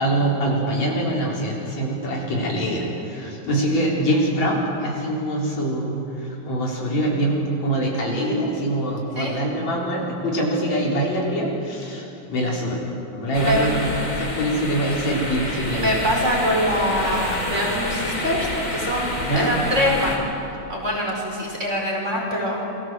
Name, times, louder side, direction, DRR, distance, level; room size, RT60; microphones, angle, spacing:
voice 1, 0.0-12.8 13.1-13.8 14.1-16.0 19.2-19.6, right 1 dB, 60° left, -3 dB, 5.6 m, -24 dB
sound 1, 13.3-20.2, left 1 dB, 30° left, 4.1 m, -28 dB
voice 2, 15.8-20.2 20.7-22.6, equal, 20° right, -2 dB, 5.1 m, -24 dB
29.0 x 23.0 x 7.8 m, 2.9 s
omnidirectional pair, 3.5 m